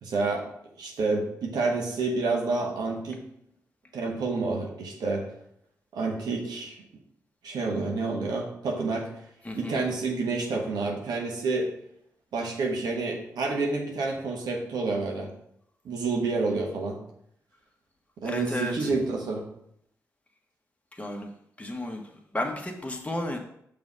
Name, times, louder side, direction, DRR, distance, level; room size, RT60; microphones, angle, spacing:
voice 1, 0.0-0.5 0.8-3.2 3.9-5.3 5.9-6.8 7.4-9.1 9.5-11.7 12.3-15.3 15.8-17.0 18.2-19.4, right 3 dB, 80° right, 0 dB, 1.3 m, -29 dB
voice 2, 9.4-9.8 18.2-18.9 20.9-21.3 21.6-22.0 22.3-23.4, left 1 dB, 20° left, 2 dB, 1.4 m, -32 dB
6.0 x 3.4 x 5.2 m, 0.72 s
supercardioid pair, 45°, 7 cm